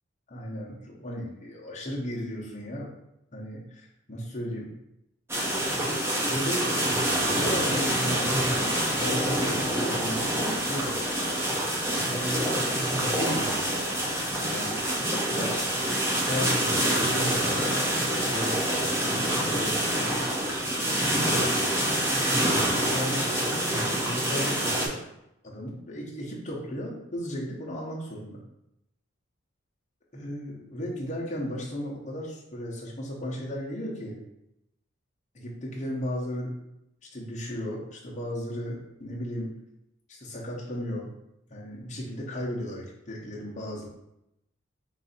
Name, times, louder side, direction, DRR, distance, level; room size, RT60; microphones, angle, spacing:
voice 1, 0.3-2.9 3.3-4.7 6.3-7.0 7.3-11.0 11.9-13.8 14.4-15.0 15.4-15.6 16.1-17.7 18.3-20.2 21.2-21.6 22.4-22.6 22.9-25.0 25.4-28.4 30.1-34.2 35.3-36.5 37.1-39.5 40.1-41.1 41.5-43.9, equal, 35° left, -4 dB, 0.9 m, -35 dB
sound 1, 5.3-24.9, right 1 dB, 10° right, 0.6 m, -26 dB
4.0 x 2.7 x 4.1 m, 0.85 s
head